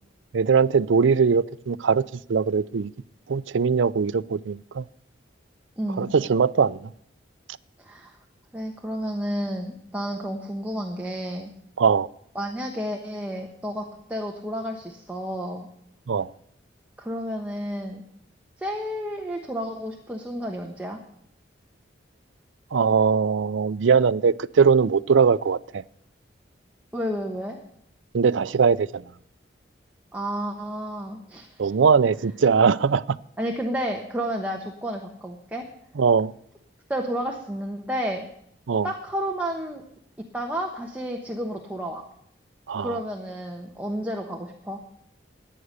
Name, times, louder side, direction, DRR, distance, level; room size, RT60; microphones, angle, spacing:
voice 1, 0.3-2.0 2.3-2.9 3.3-4.8 6.0-6.8 11.8-12.1 16.1-16.3 22.7-25.8 28.1-29.0 31.6-33.2 36.0-36.3 38.7-38.9 42.7-42.9, right 5 dB, 90° right, 0.5 m, -21 dB
voice 2, 5.8-6.1 7.8-8.2 8.5-11.5 12.3-15.7 17.0-18.0 18.6-21.0 26.9-27.6 30.1-31.7 33.4-35.6 36.9-38.3 38.8-39.8 40.3-42.0 42.8-44.8, equal, 10° right, 1.2 m, -31 dB
14.5 x 9.9 x 6.6 m
head